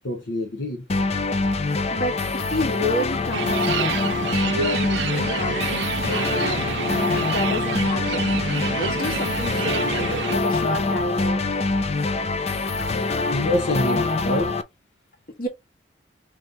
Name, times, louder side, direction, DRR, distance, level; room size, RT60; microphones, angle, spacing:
voice 1, 0.0-0.8 13.3-14.5, left 1 dB, 75° left, 1.0 m, -26 dB
sound 1, 0.9-14.6, left 3 dB, 35° left, 0.5 m, -24 dB
voice 2, 1.9-4.0 4.5-6.8 7.1-8.3 8.8-11.6 12.8-13.3 15.4-15.5, left 1 dB, 55° left, 1.6 m, -30 dB
sound 2, 3.3-10.3, right 8 dB, 80° right, 0.4 m, -29 dB
3.4 x 3.1 x 3.9 m
head